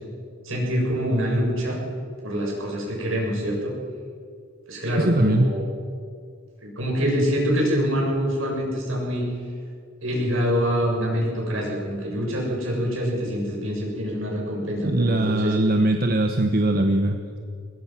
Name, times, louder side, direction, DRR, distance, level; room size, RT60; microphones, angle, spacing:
voice 1, 0.4-1.8 2.2-3.7 4.7-5.6 6.6-9.2 10.0-15.5, equal, 70° right, -1 dB, 7.2 m, -25 dB
voice 2, 5.0-5.5 14.8-17.4, right 1 dB, 45° right, 6 dB, 1.1 m, -21 dB
22.0 x 21.0 x 6.1 m, 2.2 s
head